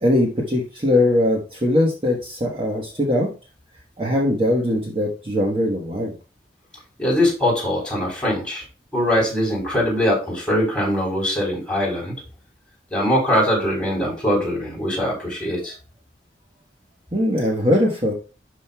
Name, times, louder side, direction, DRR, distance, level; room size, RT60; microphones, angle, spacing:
voice 1, 0.0-3.3 4.0-6.1 17.1-18.1, left 1 dB, 30° right, -1 dB, 1.2 m, -20 dB
voice 2, 7.0-8.6 8.9-12.2 12.9-15.8, equal, 5° left, -4 dB, 3.9 m, -22 dB
11.5 x 5.1 x 2.3 m, 0.33 s
head